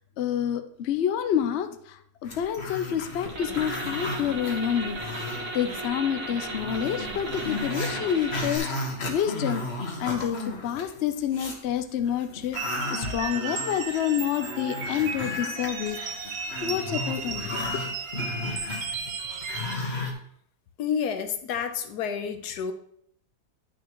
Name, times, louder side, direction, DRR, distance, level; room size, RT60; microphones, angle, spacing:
voice 1, 0.2-9.6 10.0-12.6 12.9-16.0 16.2-17.7, left 9 dB, 60° left, 9 dB, 0.7 m, -28 dB
Growling, 2.2-5.8 6.1-6.2 6.5-11.6 12.1-20.1, left 2 dB, 45° left, 1.5 m, -35 dB
sound 1, 3.2-8.6, right 2 dB, 60° right, 1.9 m, -35 dB
sound 2, 12.5-19.8, right 4 dB, 80° right, 1.5 m, -34 dB
voice 2, 20.8-22.7, left 7 dB, 85° left, 8 dB, 1.3 m, -29 dB
10.5 x 6.3 x 3.0 m, 0.66 s
omnidirectional pair, 1.7 m